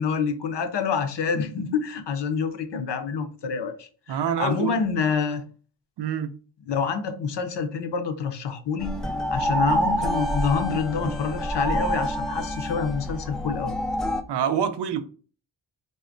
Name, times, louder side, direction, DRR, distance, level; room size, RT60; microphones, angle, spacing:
voice 1, 0.0-5.4 6.7-8.9 9.3-13.7, left 6 dB, 65° left, 0.6 m, -27 dB
voice 2, 4.1-4.8 6.0-6.4 14.3-15.0, right 8 dB, 65° right, 0.5 m, -26 dB
sound 1, 8.8-14.2, equal, ahead, 0.3 m, -27 dB
3.4 x 2.1 x 2.5 m
cardioid pair, 45°, 46 cm